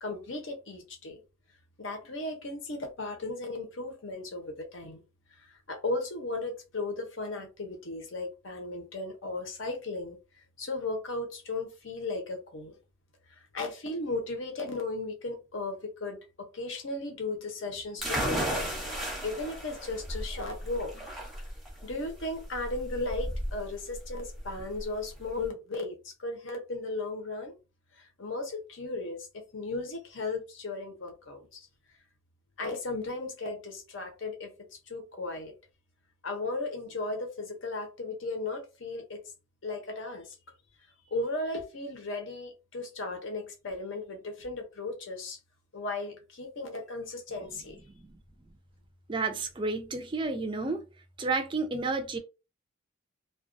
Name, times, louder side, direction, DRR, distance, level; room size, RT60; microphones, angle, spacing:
voice 1, 0.0-1.2 1.8-5.0 5.4-10.2 10.6-12.8 13.3-18.7 19.2-20.9 21.8-27.6 27.9-29.3 29.5-31.7 32.6-35.5 36.2-39.2 39.6-40.4 41.0-45.4 45.7-47.8, left 2 dB, 65° left, 0.8 m, -36 dB
sound 1, 18.0-25.5, equal, ahead, 0.7 m, -35 dB
voice 2, 49.1-50.8 51.2-52.2, right 3 dB, 25° right, 0.4 m, -31 dB
2.3 x 2.2 x 2.5 m
head